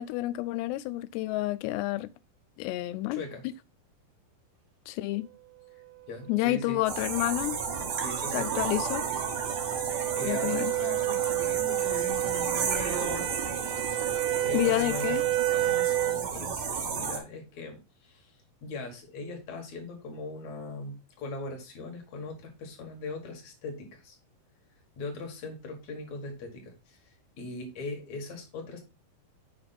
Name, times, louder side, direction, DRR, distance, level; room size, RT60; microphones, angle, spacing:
voice 1, 0.0-2.1 2.6-3.2 4.9-5.3 6.3-7.6 8.3-9.0 10.2-10.7 14.5-15.2, left 17 dB, 90° left, 2.7 m, -29 dB
voice 2, 3.1-3.4 5.7-5.8 6.1-6.8 8.0-8.6 9.7-9.8 10.1-13.3 14.0-15.2 15.5-18.3 18.6-24.2 25.0-28.8, left 3 dB, 55° left, 2.4 m, -40 dB
sound 1, 6.4-16.3, right 15 dB, 80° right, 2.5 m, -31 dB
sound 2, 6.8-17.2, right 6 dB, 60° right, 1.9 m, -33 dB
7.8 x 5.2 x 4.0 m
omnidirectional pair, 4.8 m